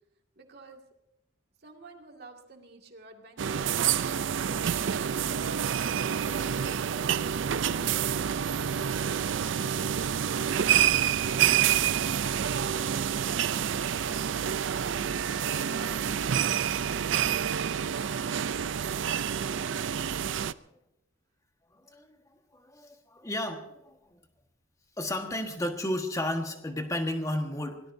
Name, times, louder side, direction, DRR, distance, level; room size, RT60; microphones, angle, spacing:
voice 1, 0.4-0.8 1.6-5.0 5.4-7.2 7.6-13.3 14.0-16.4, right 3 dB, 55° right, 2 dB, 2.1 m, -50 dB
sound 1, 3.4-20.5, right 8 dB, 75° right, 0.4 m, -28 dB
voice 2, 21.7-22.2 22.5-24.1 25.0-27.8, left 1 dB, 15° left, 5 dB, 1.4 m, -33 dB
24.0 x 18.5 x 2.7 m, 0.87 s
head